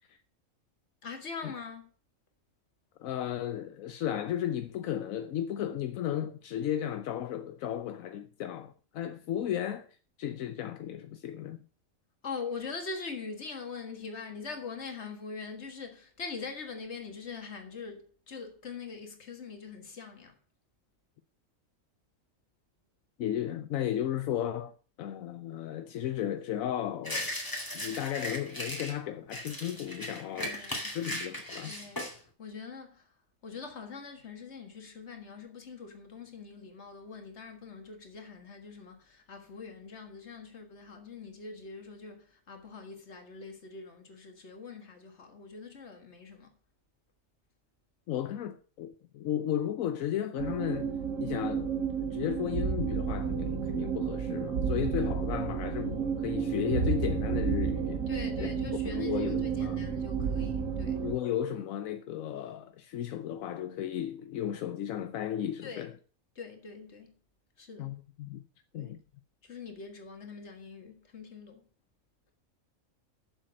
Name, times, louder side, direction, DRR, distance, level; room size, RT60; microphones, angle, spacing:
voice 1, 1.0-1.9 12.2-20.4 30.4-30.9 31.7-33.1 33.4-46.5 58.1-61.0 65.6-65.9 66.4-67.1 67.6-67.9 68.7-69.0 69.4-71.6, left 5 dB, 55° left, 2.0 m, -43 dB
voice 2, 3.0-9.9 10.2-11.6 23.2-24.7 25.0-27.3 27.7-30.7 30.9-31.7 48.1-50.9 51.2-58.0 58.4-59.8 61.0-65.9 67.8-68.4 68.7-69.0, left 11 dB, 80° left, 1.1 m, -34 dB
sound 1, 27.0-29.0 29.3-32.2, left 1 dB, 15° left, 2.3 m, -37 dB
sound 2, 50.4-61.1, right 6 dB, 75° right, 1.5 m, -31 dB
7.5 x 6.8 x 7.6 m
omnidirectional pair, 1.4 m